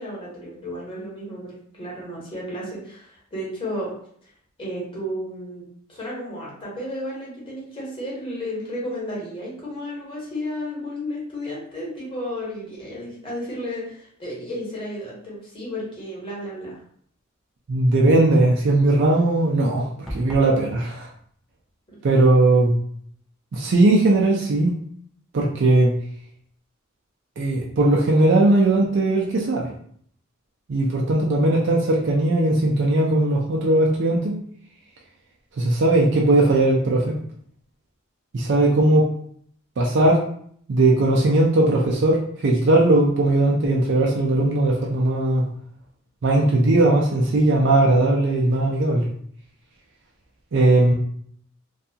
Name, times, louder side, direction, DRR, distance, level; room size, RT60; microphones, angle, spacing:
voice 1, 0.0-3.9 4.2-4.3 4.6-16.8 21.9-22.0, equal, 25° left, -5 dB, 1.0 m, -33 dB
voice 2, 17.7-19.9 20.1-21.1 22.0-22.8 23.5-24.7 25.3-25.9 27.4-29.7 30.7-34.4 35.6-37.2 38.3-39.1 39.8-40.2 40.7-45.4 46.2-49.0 50.5-50.9, right 2 dB, 55° right, -2 dB, 0.4 m, -18 dB
sound 1, 20.1-20.6, equal, ahead, 0.5 m, -33 dB
2.6 x 2.3 x 2.7 m, 0.63 s
head